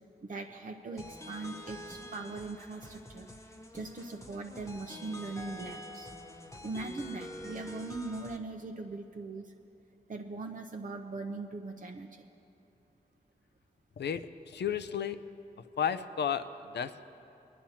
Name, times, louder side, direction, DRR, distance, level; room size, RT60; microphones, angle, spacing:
voice 1, 0.2-3.3 3.7-6.1 6.6-9.5 10.1-12.2, right 3 dB, 50° right, 3 dB, 0.6 m, -40 dB
sound 1, 1.0-8.4, left 1 dB, 15° left, 0.9 m, -46 dB
voice 2, 14.0-15.2 15.8-17.0, left 8 dB, 75° left, 11 dB, 0.5 m, -33 dB
24.5 x 10.0 x 2.8 m, 2.8 s
cardioid pair, 60°, 18 cm